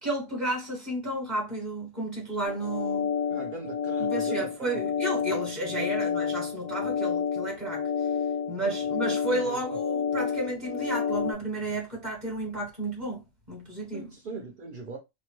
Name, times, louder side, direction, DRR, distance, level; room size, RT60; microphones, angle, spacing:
voice 1, 0.0-3.1 4.0-7.8 8.5-14.1, right 1 dB, 35° right, 1.2 m, -32 dB
sound 1, 2.5-11.3, left 6 dB, 75° left, 1.0 m, -30 dB
voice 2, 3.3-4.8 5.7-6.0 8.6-8.8 9.0-9.8 13.9-15.0, right 4 dB, 55° right, 0.6 m, -40 dB
2.9 x 2.1 x 3.0 m
omnidirectional pair, 1.4 m